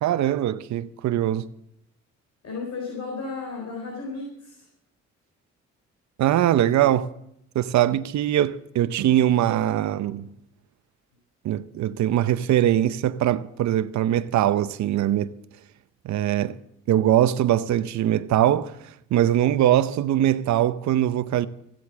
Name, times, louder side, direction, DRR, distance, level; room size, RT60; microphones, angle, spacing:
voice 1, 0.0-1.4 6.2-7.1 7.5-10.3 11.4-15.3 16.0-16.6 16.9-18.8 19.1-21.5, right 12 dB, 65° right, 0.7 m, -22 dB
voice 2, 2.4-4.6, left 4 dB, 60° left, 4.1 m, -34 dB
14.5 x 8.2 x 7.3 m
cardioid pair, 90°, 30 cm